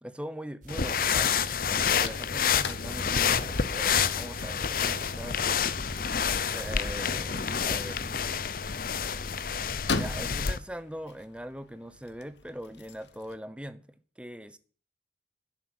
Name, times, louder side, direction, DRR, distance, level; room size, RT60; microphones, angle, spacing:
voice 1, 0.0-5.4 6.5-8.1 10.0-13.8 14.2-14.6, equal, 5° right, 0.8 m, -41 dB
sound 1, 0.6-8.4, right 1 dB, 45° right, 1.9 m, -46 dB
sound 2, 0.7-10.6, left 7 dB, 50° left, 0.7 m, -28 dB
sound 3, 1.0-13.4, left 4 dB, 75° left, 1.2 m, -42 dB
10.5 x 8.0 x 8.7 m
head